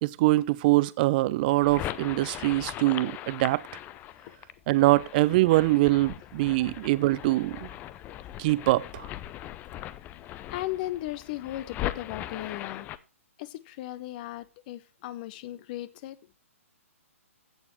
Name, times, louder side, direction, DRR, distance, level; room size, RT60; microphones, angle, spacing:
voice 1, 0.0-3.6 4.7-7.7 8.4-9.0, right 18 dB, 35° right, 0.6 m, -23 dB
sound 1, 1.5-13.0, left 13 dB, 20° left, 0.6 m, -39 dB
voice 2, 10.1-12.9 13.4-16.2, left 15 dB, 35° left, 0.9 m, -36 dB
15.5 x 7.0 x 3.1 m
figure-of-eight pair, 125°, 8 cm